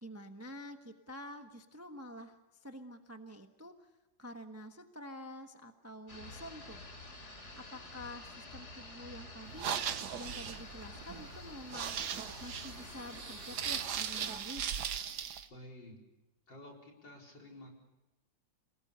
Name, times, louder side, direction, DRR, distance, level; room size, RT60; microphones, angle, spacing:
voice 1, 0.0-3.9 4.2-6.8 7.5-9.8 10.2-14.6, left 1 dB, 10° right, 6 dB, 0.9 m, -48 dB
sound 1, 6.1-14.4, left 2 dB, 35° left, 3.1 m, -49 dB
sound 2, 9.5-15.4, right 8 dB, 65° right, 1.5 m, -38 dB
sound 3, 10.3-10.6 10.8-10.9 11.6-15.1, right 4 dB, 45° right, 2.3 m, -60 dB
voice 2, 15.5-16.0 16.5-17.7, left 1 dB, 70° left, 0 dB, 5.3 m, -51 dB
27.5 x 19.5 x 6.8 m, 1.0 s
omnidirectional pair, 2.0 m